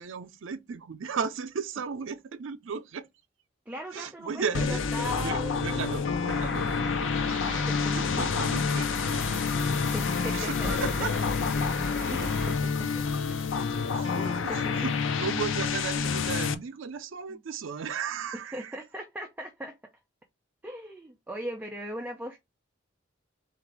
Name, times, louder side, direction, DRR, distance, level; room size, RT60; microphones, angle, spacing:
voice 1, 0.0-3.1 3.9-7.6 7.9-9.2 10.3-11.2 12.0-12.1 13.9-14.9 15.2-18.8, right 6 dB, 80° right, 0.5 m, -35 dB
voice 2, 3.7-6.0 7.5-8.3 9.8-10.7 12.1-13.0 13.6-13.7 14.1-14.8 17.3-17.4 18.5-19.8 20.6-22.4, equal, 10° right, 0.4 m, -39 dB
sound 1, 4.5-16.5, left 5 dB, 80° left, 0.5 m, -29 dB
sound 2, 6.3-12.6, left 3 dB, 60° left, 0.8 m, -34 dB
3.9 x 2.5 x 4.5 m
head